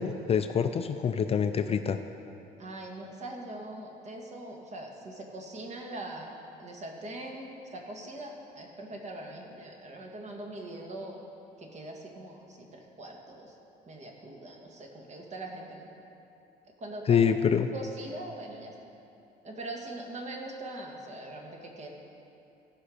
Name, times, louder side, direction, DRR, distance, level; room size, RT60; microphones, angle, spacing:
voice 1, 0.0-2.0 17.1-17.7, left 7 dB, 35° left, 8 dB, 0.4 m, -26 dB
voice 2, 2.6-6.3 6.6-11.2 11.6-13.5 13.9-15.9 16.8-17.2 17.7-18.7 19.4-21.9, right 1 dB, 45° right, 1 dB, 1.7 m, -42 dB
16.0 x 5.5 x 5.0 m, 2.8 s
cardioid pair, 110°, 17 cm